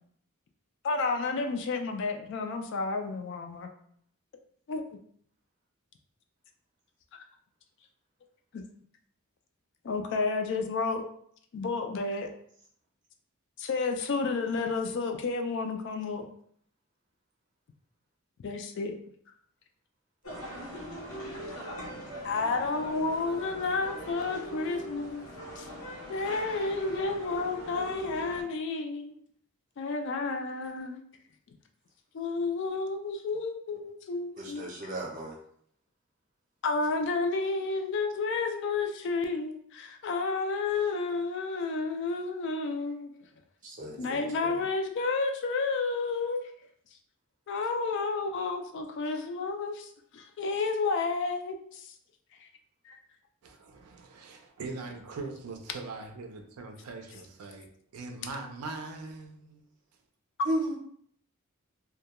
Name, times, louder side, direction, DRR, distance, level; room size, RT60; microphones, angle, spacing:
voice 1, 0.8-3.7 4.7-4.8 7.1-7.2 8.5-8.6 9.8-11.0 11.5-12.3 13.6-16.3 18.4-19.0 22.2-25.3 25.6-25.7 26.1-29.1 29.8-31.0 32.1-34.9 36.6-43.1 44.0-46.4 47.5-51.9 52.9-53.0 60.4-60.5, left 3 dB, 55° left, 0.3 m, -31 dB
sound 1, 20.2-28.4, equal, 80° left, 0.8 m, -40 dB
voice 2, 34.4-35.4 43.6-44.6 60.4-60.7, right 1 dB, 35° right, 0.6 m, -34 dB
voice 3, 53.4-57.7 57.9-59.6, right 3 dB, 85° right, 0.4 m, -41 dB
2.2 x 2.2 x 2.9 m
head